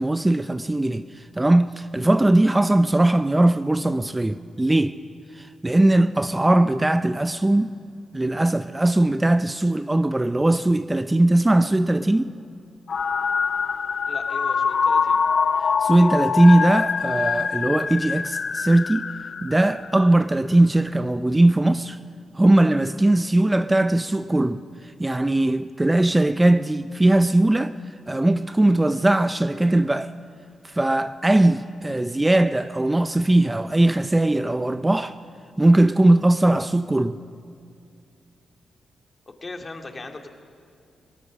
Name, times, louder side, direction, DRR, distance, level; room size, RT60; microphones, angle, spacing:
voice 1, 0.0-5.0 5.3-7.8 8.1-12.4 15.6-19.1 19.4-22.0 22.3-30.1 30.6-35.2 35.6-37.2, right 1 dB, 15° right, 0.5 m, -19 dB
sound 1, 12.9-20.2, left 6 dB, 55° left, 0.5 m, -24 dB
voice 2, 14.1-15.2 39.3-40.3, left 3 dB, 35° left, 2.3 m, -38 dB
22.5 x 20.0 x 6.3 m
cardioid pair, 80°, 0 cm